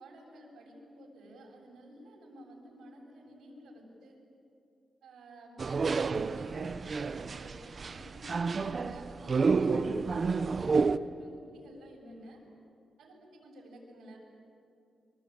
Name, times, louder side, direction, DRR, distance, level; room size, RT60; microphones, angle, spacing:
voice 1, 0.0-4.2 5.0-12.4 13.0-14.2, equal, 90° right, 0 dB, 7.3 m, -52 dB
sound 1, 5.6-11.0, right 4 dB, 35° right, 0.7 m, -30 dB
25.5 x 25.0 x 8.8 m, 2.6 s
wide cardioid pair, 145°, 0 cm